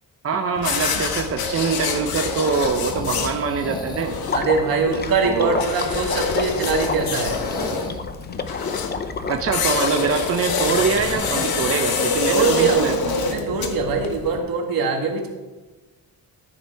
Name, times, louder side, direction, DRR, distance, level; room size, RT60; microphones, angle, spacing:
voice 1, 0.2-4.1 5.2-5.6 9.3-13.0, right 5 dB, 40° right, 4 dB, 0.7 m, -24 dB
sound 1, 0.5-14.4, left 5 dB, 80° left, 1.4 m, -26 dB
sound 2, 2.3-11.8, left 1 dB, 10° left, 1.2 m, -37 dB
Water / Liquid, 4.2-11.0, left 4 dB, 30° left, 0.6 m, -30 dB
voice 2, 4.3-7.4 12.3-15.3, right 4 dB, 70° right, 2 dB, 2.1 m, -22 dB
13.5 x 7.2 x 4.7 m, 1.2 s
wide cardioid pair, 155°, 35 cm